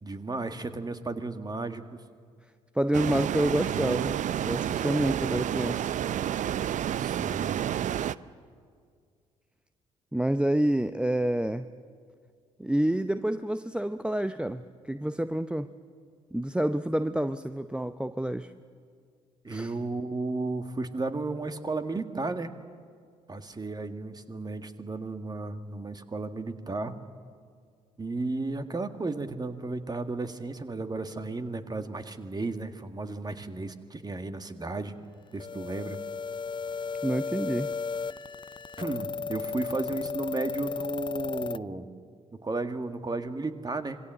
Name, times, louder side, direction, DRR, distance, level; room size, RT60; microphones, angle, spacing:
voice 1, 0.0-2.0 7.0-7.6 16.9-17.0 19.4-22.6 23.3-27.0 28.0-34.9 35.3-36.0 38.8-41.9 42.4-44.0, right 3 dB, 20° right, 8 dB, 1.8 m, -34 dB
voice 2, 2.7-5.9 10.1-11.7 12.6-15.7 16.3-18.5 19.5-19.7 37.0-37.7, right 1 dB, 5° right, 11 dB, 0.7 m, -28 dB
sound 1, 2.9-8.2, right 10 dB, 45° right, 0.6 m, -30 dB
sound 2, 35.4-41.6, left 5 dB, 30° left, 0.6 m, -34 dB
26.5 x 22.5 x 7.6 m, 2.1 s
figure-of-eight pair, 50°, 18 cm